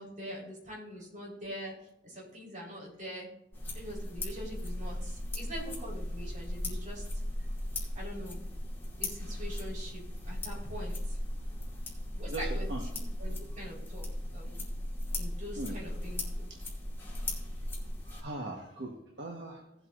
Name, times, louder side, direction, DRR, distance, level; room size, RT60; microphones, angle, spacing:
voice 1, 0.0-1.7 2.0-3.3 3.7-7.2 7.9-8.4 9.0-11.2 12.1-12.7 12.9-14.7 15.2-16.5, equal, 45° right, -3 dB, 4.2 m, -44 dB
sound 1, 3.5-18.2, left 1 dB, 15° left, 2.3 m, -37 dB
voice 2, 12.3-12.9 13.5-13.6 15.6-15.8 16.5-16.6 18.0-19.7, right 2 dB, 75° right, 1 dB, 1.3 m, -40 dB
17.5 x 8.0 x 2.5 m, 0.84 s
head